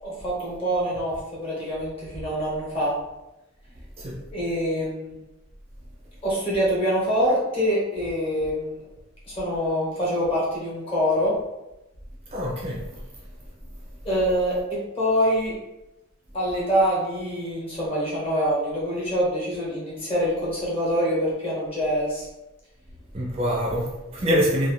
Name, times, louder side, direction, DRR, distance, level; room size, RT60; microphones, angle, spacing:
voice 1, 0.0-3.0 4.3-5.1 6.2-8.7 9.3-11.3 14.0-15.5 16.3-22.3, equal, 25° left, -6 dB, 0.9 m, -25 dB
voice 2, 12.3-14.0 23.1-24.7, equal, 30° right, -4 dB, 0.5 m, -26 dB
2.6 x 2.0 x 3.1 m, 0.97 s
head